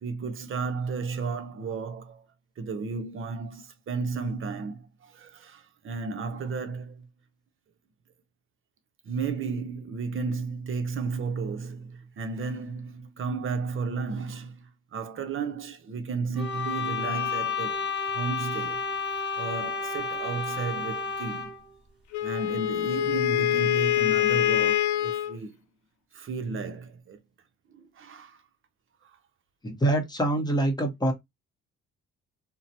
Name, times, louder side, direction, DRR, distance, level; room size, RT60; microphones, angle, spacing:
voice 1, 0.0-2.2 2.6-7.1 9.0-18.9 19.4-21.6 22.2-25.6 26.1-27.2 27.7-28.4 29.0-29.1, right 4 dB, 45° right, 0.7 m, -33 dB
sound 1, 16.4-21.6, left 5 dB, 5° right, 1.4 m, -31 dB
Wind instrument woodwind instrument, 22.1-25.4, left 12 dB, 80° left, 0.5 m, -25 dB
voice 2, 29.6-31.1, right 1 dB, 15° left, 0.9 m, -25 dB
2.7 x 2.1 x 2.7 m
cardioid pair, 90°, 30 cm